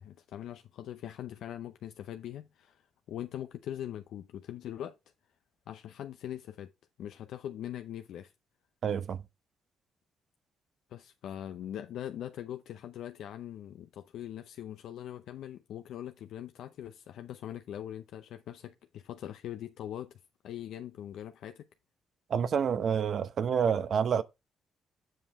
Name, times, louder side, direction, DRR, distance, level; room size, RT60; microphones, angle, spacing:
voice 1, 0.0-5.0 5.7-6.7 7.0-8.3 10.9-20.1 20.4-21.7, left 11 dB, 75° left, 0.5 m, -42 dB
voice 2, 8.8-9.2 22.3-24.2, right 7 dB, 60° right, 0.7 m, -28 dB
7.6 x 5.5 x 3.4 m
cardioid pair, 90°, 0 cm